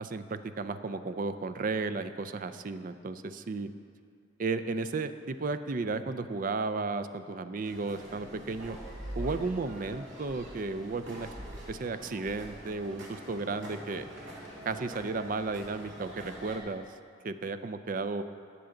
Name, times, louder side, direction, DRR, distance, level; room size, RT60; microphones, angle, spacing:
voice 1, 0.0-3.7 4.4-8.8 9.2-11.3 11.7-14.1 14.7-16.8 17.2-18.2, right 3 dB, 45° right, 10 dB, 0.4 m, -34 dB
sound 1, 7.6-16.6, right 1 dB, 65° right, 2.3 m, -44 dB
18.5 x 7.0 x 3.8 m, 2.3 s
head